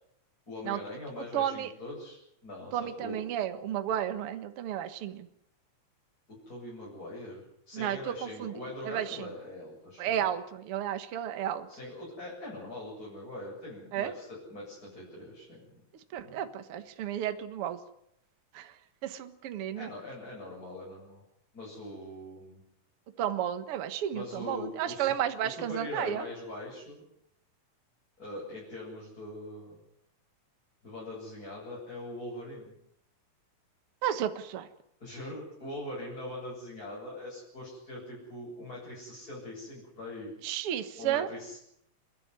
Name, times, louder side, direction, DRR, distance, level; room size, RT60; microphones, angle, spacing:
voice 1, 0.5-3.2 6.3-10.2 11.7-15.8 16.2-16.4 19.7-21.2 21.5-22.6 24.1-25.1 25.4-27.0 28.2-29.8 30.8-32.7 35.0-40.3 41.0-41.6, left 1 dB, 25° left, -5 dB, 8.4 m, -42 dB
voice 2, 1.3-1.7 2.7-5.3 7.7-8.5 8.8-9.3 10.0-11.7 13.9-14.1 16.1-17.8 18.5-18.7 19.0-19.9 23.2-26.2 34.0-34.7 40.4-41.3, right 10 dB, 55° right, 9 dB, 1.9 m, -32 dB
30.0 x 12.5 x 9.7 m, 0.75 s
omnidirectional pair, 3.8 m